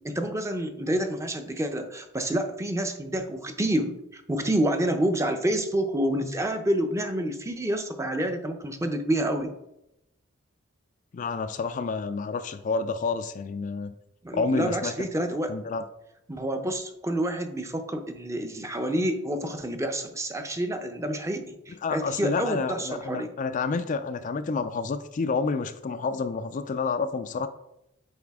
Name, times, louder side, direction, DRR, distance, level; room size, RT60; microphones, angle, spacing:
voice 1, 0.0-9.5 14.2-15.6 16.3-23.3, right 1 dB, 15° right, 6 dB, 0.6 m, -28 dB
voice 2, 11.1-13.9 14.3-15.1 15.5-15.8 21.8-27.5, left 4 dB, 40° left, 10 dB, 0.3 m, -29 dB
8.6 x 4.2 x 3.5 m, 0.85 s
head